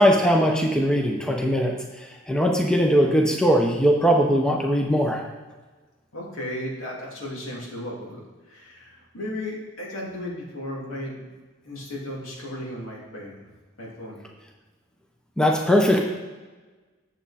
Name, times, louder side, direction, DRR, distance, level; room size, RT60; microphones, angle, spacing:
voice 1, 0.0-5.2 15.4-16.0, equal, 5° left, 1 dB, 0.7 m, -20 dB
voice 2, 6.1-11.3 11.6-13.4 13.8-14.2, left 1 dB, 90° left, -4 dB, 2.6 m, -35 dB
7.7 x 7.3 x 4.2 m, 1.3 s
head